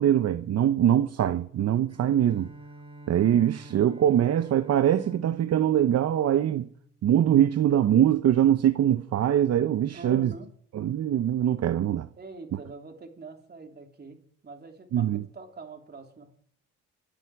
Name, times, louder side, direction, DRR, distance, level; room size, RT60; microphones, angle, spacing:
voice 1, 0.0-2.5 3.1-6.7 7.0-10.3 10.7-12.1 14.9-15.2, right 10 dB, 55° right, 0.8 m, -23 dB
Bowed string instrument, 1.9-7.1, right 1 dB, 20° right, 4.0 m, -47 dB
voice 2, 9.9-10.5 12.2-16.4, right 3 dB, 35° right, 3.0 m, -44 dB
25.0 x 8.9 x 4.8 m
cardioid pair, 90°, 30 cm